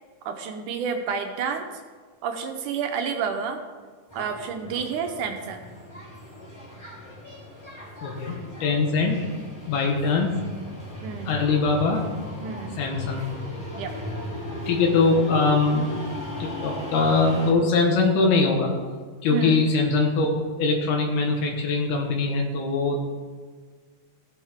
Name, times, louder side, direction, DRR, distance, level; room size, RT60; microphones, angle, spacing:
voice 1, 0.3-1.7 2.2-3.6 4.1-5.7 11.0-11.3 12.4-12.8 13.8-13.9 19.3-19.6, right 6 dB, 75° right, 5 dB, 2.0 m, -29 dB
sound 1, 4.1-17.5, left 1 dB, 5° left, 3.1 m, -37 dB
voice 2, 8.0-9.3 9.7-10.4 11.3-12.0 12.8-13.2 14.7-15.9 16.4-18.7 19.2-23.1, left 4 dB, 80° left, 1 dB, 3.1 m, -22 dB
18.0 x 7.4 x 3.6 m, 1.5 s
omnidirectional pair, 4.4 m